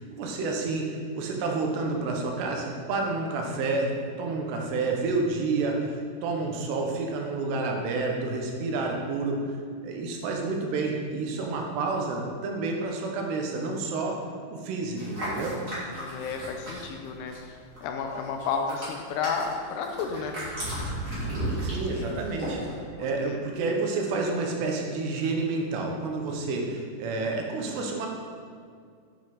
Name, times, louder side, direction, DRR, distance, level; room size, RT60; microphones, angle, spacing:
voice 1, 0.0-3.9 4.2-9.5 9.8-14.2 14.5-15.6 21.6-22.7 23.0-28.1, right 3 dB, 80° right, 1 dB, 3.1 m, -29 dB
voice 2, 13.5-14.0 15.9-17.5 17.8-20.4 21.7-22.2 23.0-23.4, left 5 dB, 85° left, 4 dB, 2.7 m, -33 dB
sound 1, 15.0-17.5 17.8-22.7, right 1 dB, 25° right, 2.2 m, -34 dB
8.8 x 7.6 x 4.0 m, 2.2 s
omnidirectional pair, 4.8 m